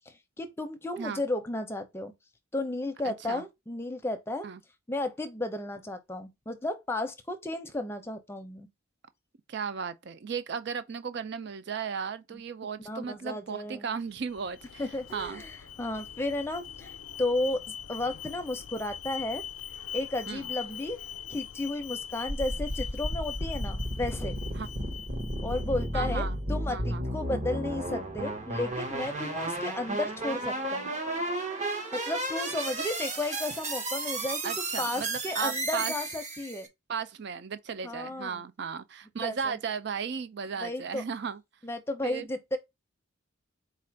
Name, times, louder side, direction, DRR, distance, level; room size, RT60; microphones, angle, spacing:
voice 1, 0.1-2.1 2.5-4.5 4.9-8.7 12.9-13.9 14.8-17.6 17.9-19.4 19.9-21.0 21.3-24.4 25.4-30.9 31.9-34.5 34.8-36.7 37.8-38.4 39.2-39.6 40.6-41.0 41.6-42.6, left 2 dB, 10° left, 0.5 m, -33 dB
voice 2, 3.0-3.4 4.4-4.6 9.5-14.8 15.1-15.4 20.3-20.5 24.5-24.7 25.9-26.4 26.7-27.0 34.4-35.9 36.9-41.4 42.0-42.3, right 6 dB, 55° right, 0.4 m, -35 dB
Alarm, 14.1-26.2, left 9 dB, 85° left, 0.4 m, -42 dB
sound 1, 22.3-36.7, right 1 dB, 35° right, 0.9 m, -33 dB
4.2 x 2.5 x 4.4 m
head